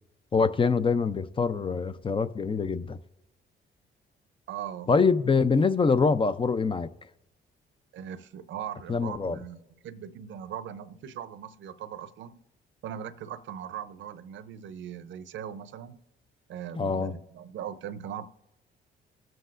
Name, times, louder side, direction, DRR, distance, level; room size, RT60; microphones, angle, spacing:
voice 1, 0.3-3.0 4.9-6.9 8.9-9.4 16.8-17.1, left 4 dB, 25° left, 0.5 m, -24 dB
voice 2, 4.5-4.9 7.9-12.4 12.8-16.0 16.5-18.3, right 9 dB, 70° right, 0.7 m, -39 dB
20.5 x 7.7 x 2.5 m
cardioid pair, 90°, 20 cm